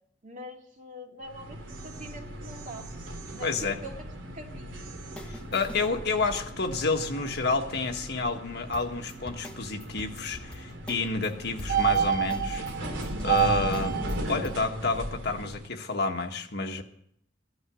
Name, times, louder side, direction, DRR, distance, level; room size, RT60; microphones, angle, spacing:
voice 1, 0.2-2.9 3.3-3.9 4.3-4.7, equal, 45° right, 2 dB, 2.2 m, -44 dB
sound 1, 1.2-15.6, right 5 dB, 90° right, 2.8 m, -33 dB
voice 2, 3.4-3.8 5.3-12.6 13.2-14.0 14.3-16.8, left 3 dB, 60° left, 5 dB, 1.5 m, -29 dB
sound 2, 5.0-5.9 8.7-11.3 11.6-14.5, left 1 dB, 5° left, 1.2 m, -44 dB
15.5 x 11.5 x 6.2 m, 0.70 s
head